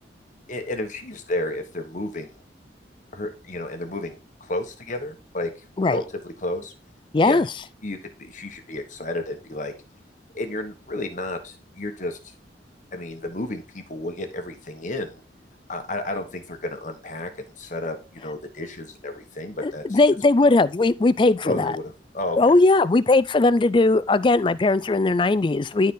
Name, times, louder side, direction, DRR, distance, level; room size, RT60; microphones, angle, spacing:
voice 1, 0.5-2.4 3.1-5.5 5.9-6.7 7.2-7.4 7.8-9.7 10.3-12.3 12.9-15.2 15.7-20.0 21.4-22.6, left 1 dB, 40° left, 1.3 m, -32 dB
voice 2, 7.1-7.5 19.6-21.7 22.4-25.9, left 3 dB, 25° left, 0.3 m, -19 dB
12.5 x 4.2 x 3.8 m
head